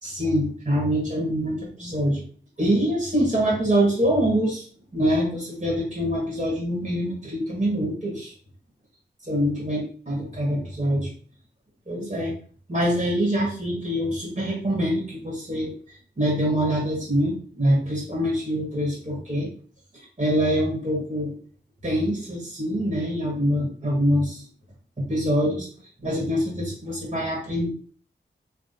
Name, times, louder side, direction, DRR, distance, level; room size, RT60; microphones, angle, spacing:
voice 1, 0.0-2.2 2.6-4.7 4.9-8.3 9.3-11.1 11.9-12.3 12.7-19.5 20.2-21.3 21.8-24.4 25.0-25.7 26.0-27.7, equal, 35° right, -3 dB, 1.7 m, -24 dB
3.3 x 3.0 x 2.8 m, 0.44 s
cardioid pair, 45°, 19 cm